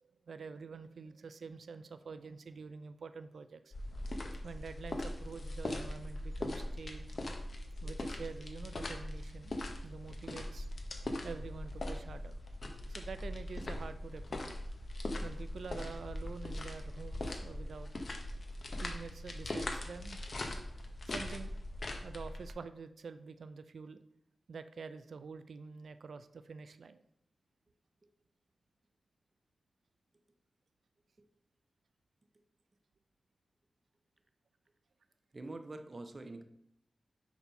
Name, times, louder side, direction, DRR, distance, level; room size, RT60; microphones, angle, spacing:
voice 1, 0.3-3.7 4.4-7.1 7.8-9.6 9.8-10.7 11.2-12.4 12.9-14.6 15.2-17.9 18.8-20.2 21.1-21.5 22.0-24.0 24.5-27.0, right 5 dB, 80° right, 11 dB, 0.4 m, -47 dB
sound 1, 3.7-22.5, left 1 dB, 50° left, 0.9 m, -41 dB
voice 2, 35.3-36.4, right 2 dB, 35° right, 7 dB, 0.7 m, -45 dB
6.9 x 4.2 x 5.7 m, 0.75 s
wide cardioid pair, 120°, 0 cm